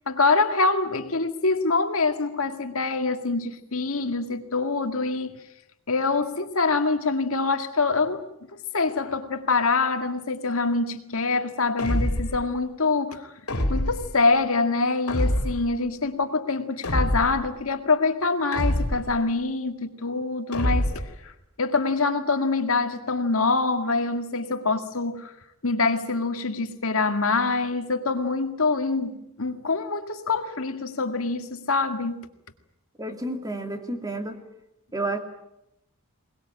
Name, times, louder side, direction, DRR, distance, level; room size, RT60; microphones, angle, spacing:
voice 1, 0.1-5.4 5.9-13.3 13.7-20.9 21.2-21.3 21.6-25.3 25.6-32.3, left 3 dB, 70° left, 2.0 m, -25 dB
sound 1, 11.8-12.5 13.5-14.1 15.1-15.7 16.8-17.5 18.5-19.2 20.5-21.2, left 1 dB, 85° left, 3.3 m, -25 dB
voice 2, 33.0-34.4 34.9-35.2, right 2 dB, 15° right, 2.5 m, -30 dB
22.5 x 20.5 x 8.9 m
head